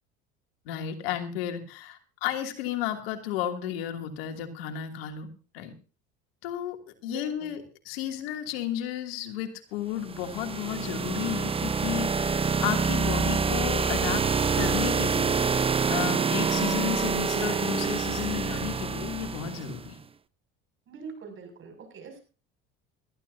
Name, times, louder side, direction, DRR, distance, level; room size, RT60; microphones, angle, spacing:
voice 1, 0.7-5.3 5.5-5.7 6.4-6.8 7.0-14.2 14.6-15.4 15.9-20.0, left 11 dB, 85° left, 4 dB, 2.8 m, -33 dB
voice 2, 7.0-7.5 20.9-22.2, right 5 dB, 45° right, 5 dB, 6.6 m, -43 dB
sound 1, 10.0-19.8, right 5 dB, 20° right, 0.8 m, -27 dB
20.5 x 14.5 x 2.8 m, 0.34 s
supercardioid pair, 95°, 29 cm